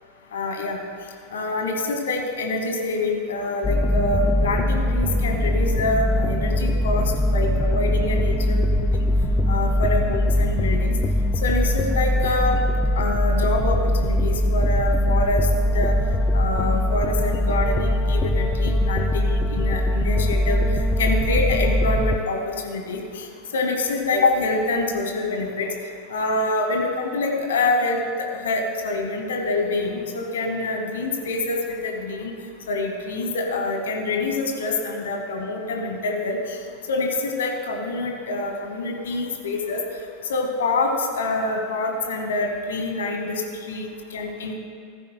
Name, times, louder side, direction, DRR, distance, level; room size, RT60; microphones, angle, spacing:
voice 1, 0.3-0.8 1.3-8.9 9.5-11.0 11.4-12.6 13.0-15.5 15.7-15.9 16.3-20.6 21.0-23.3 23.5-25.7 26.1-32.3 32.7-36.6 36.9-39.8 40.3-43.4 43.7-44.6, left 2 dB, 70° left, 3 dB, 1.1 m, -26 dB
sound 1, 3.6-22.2, left 1 dB, 20° left, 0.3 m, -21 dB
15.0 x 9.7 x 2.2 m, 2.1 s
figure-of-eight pair, 85°, 0 cm